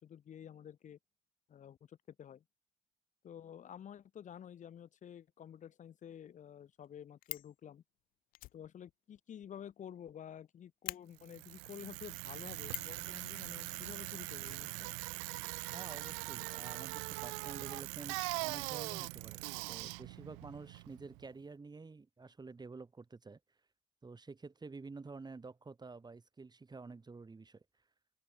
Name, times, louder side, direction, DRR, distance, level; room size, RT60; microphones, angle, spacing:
voice 1, 0.0-1.0 1.5-2.4 3.2-7.8 8.5-14.9, left 9 dB, 60° left, 4.2 m, -51 dB
Fire, 6.8-7.6 8.3-10.1 10.4-10.5 10.8-11.0 12.6-13.0 14.4-15.3 15.6-15.7 15.9-16.0, left 17 dB, 80° left, 5.4 m, -45 dB
Bicycle, 11.2-21.3, right 36 dB, 90° right, 1.4 m, -42 dB
voice 2, 15.7-23.4 24.0-27.6, right 4 dB, 30° right, 4.8 m, -50 dB
open air
supercardioid pair, 60°, 15 cm